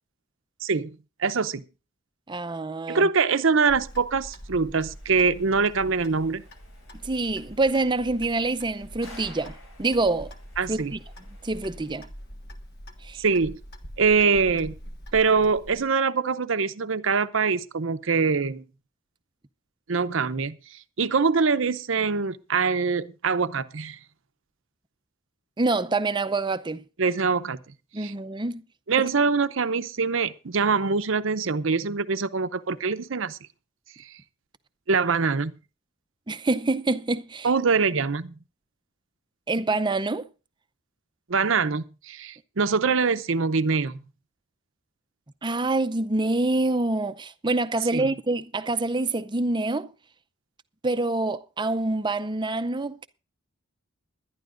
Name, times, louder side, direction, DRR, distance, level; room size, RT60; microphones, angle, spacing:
voice 1, 1.2-1.6 2.9-6.4 10.6-10.9 13.2-13.6 14.0-14.8 15.1-18.6 19.9-20.6 21.0-24.0 27.0-27.6 28.0-28.1 28.9-33.4 34.9-35.5 37.4-38.3 41.3-44.0 47.9-48.1, right 5 dB, 65° right, 0.7 m, -24 dB
voice 2, 2.3-3.1 7.0-10.3 10.7-11.0 11.4-12.1 13.0-13.2 25.6-26.8 27.9-28.6 36.3-37.5 39.5-40.2 45.4-49.9 50.8-53.1, right 2 dB, 20° right, 0.6 m, -26 dB
Clock, 3.7-15.8, equal, 50° left, 1.4 m, -44 dB
hydraulic lifter down, 4.8-12.0, left 2 dB, 75° left, 5.7 m, -53 dB
21.0 x 11.5 x 2.6 m
head